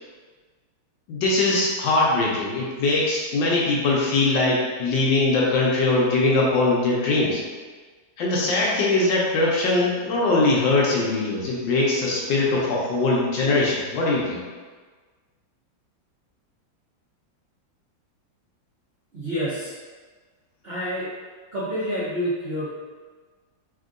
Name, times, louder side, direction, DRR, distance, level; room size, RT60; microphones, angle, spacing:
voice 1, 1.1-7.4 8.2-14.4, left 2 dB, 75° left, -4 dB, 1.3 m, -21 dB
voice 2, 19.1-19.7 20.6-21.1 21.5-22.7, equal, 45° right, -13 dB, 0.8 m, -28 dB
3.4 x 2.7 x 2.5 m, 1.4 s
omnidirectional pair, 2.1 m